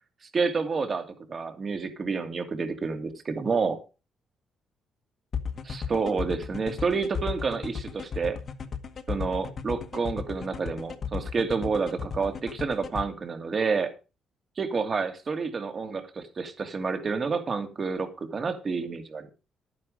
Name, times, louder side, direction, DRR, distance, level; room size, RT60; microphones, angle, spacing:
voice 1, 0.3-3.8 5.6-8.4 9.1-13.9 14.6-19.3, right 4 dB, 40° right, 7 dB, 2.6 m, -29 dB
sound 1, 5.3-13.0, left 6 dB, 50° left, 1.8 m, -34 dB
11.5 x 9.7 x 5.0 m, 0.32 s
cardioid pair, 90°, 0 cm